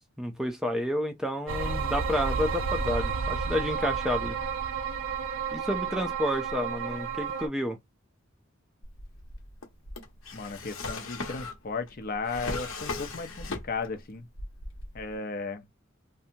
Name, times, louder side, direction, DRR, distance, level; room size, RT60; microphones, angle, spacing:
voice 1, 0.2-4.4 5.5-7.8, left 1 dB, 5° right, 0.4 m, -30 dB
sound 1, 1.5-7.5, right 5 dB, 80° right, 0.5 m, -31 dB
Drawer open or close, 8.8-14.0 14.3-15.1, left 3 dB, 85° left, 0.9 m, -38 dB
voice 2, 10.3-14.3 14.9-15.7, left 4 dB, 45° left, 0.6 m, -35 dB
2.7 x 2.2 x 2.7 m
head